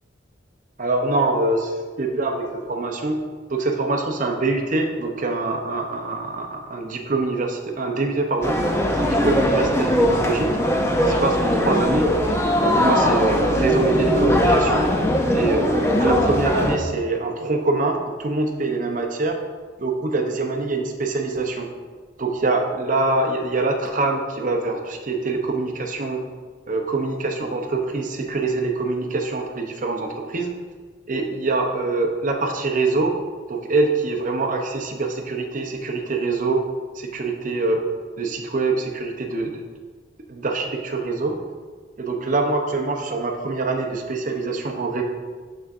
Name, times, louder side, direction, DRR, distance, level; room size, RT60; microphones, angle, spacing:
voice 1, 0.8-8.6 9.0-10.6 11.0-12.1 12.6-14.9 15.3-19.4 19.8-21.7 22.2-26.2 26.7-30.5 31.1-33.2 33.5-36.6 36.9-37.8 38.2-39.6 40.3-41.4 42.0-45.0, right 3 dB, 45° right, 4 dB, 0.6 m, -24 dB
sound 1, 8.4-16.8, equal, 15° left, 0.5 m, -20 dB
6.4 x 6.1 x 2.5 m, 1.5 s
head